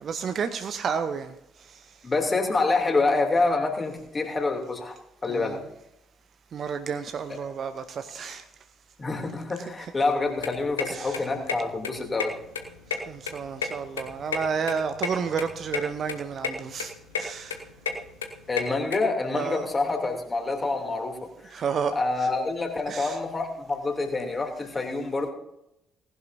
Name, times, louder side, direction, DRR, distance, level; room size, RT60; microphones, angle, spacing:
voice 1, 0.0-1.3 1.7-1.8 5.3-5.6 6.5-8.4 9.6-9.9 10.9-11.3 13.1-16.9 17.2-17.6 19.3-19.7 21.5-22.3 22.9-23.2, right 6 dB, 45° right, 10 dB, 0.8 m, -31 dB
voice 2, 2.0-5.0 5.2-5.6 9.0-12.3 18.5-21.2 21.4-21.6 21.9-25.3, left 3 dB, 30° left, 3 dB, 3.0 m, -27 dB
sound 1, 10.2-19.0, left 5 dB, 80° left, 0.9 m, -33 dB
18.5 x 11.0 x 2.7 m, 0.83 s
figure-of-eight pair, 45°, 0 cm